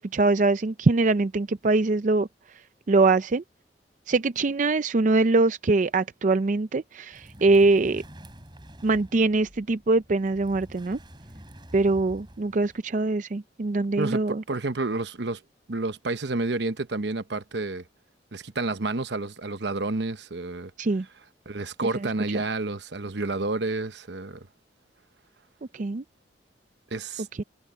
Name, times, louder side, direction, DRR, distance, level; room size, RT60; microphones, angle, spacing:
voice 1, 0.0-2.3 2.9-3.4 4.1-8.0 8.8-11.0 11.7-14.4 20.8-21.1 22.3-22.4 25.7-26.0 27.4-27.5, right 3 dB, 45° right, 0.5 m, -23 dB
sound 1, 7.1-12.8, equal, 25° right, 6.9 m, -47 dB
voice 2, 14.5-15.4 15.7-17.8 18.3-20.7 21.5-24.5 26.9-27.3, right 3 dB, 80° right, 1.1 m, -30 dB
head